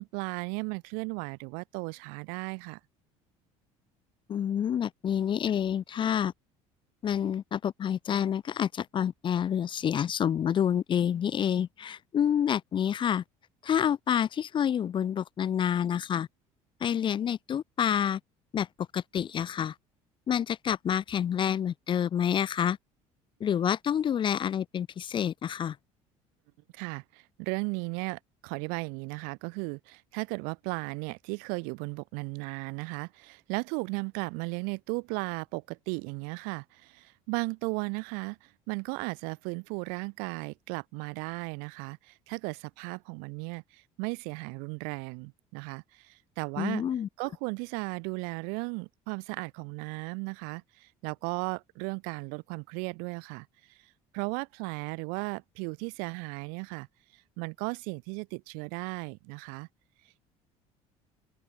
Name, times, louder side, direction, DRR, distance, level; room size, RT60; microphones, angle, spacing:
voice 1, 0.0-2.8 26.7-46.8 47.2-53.8 54.1-56.9 57.1-59.7, right 37 dB, 80° right, 0.4 m, -36 dB
voice 2, 4.3-6.3 7.0-13.2 13.6-16.3 16.8-18.2 18.5-18.7 18.9-19.7 20.3-22.8 23.4-25.8 46.6-47.1, left 9 dB, 35° left, 0.4 m, -28 dB
open air
supercardioid pair, 85°, 15 cm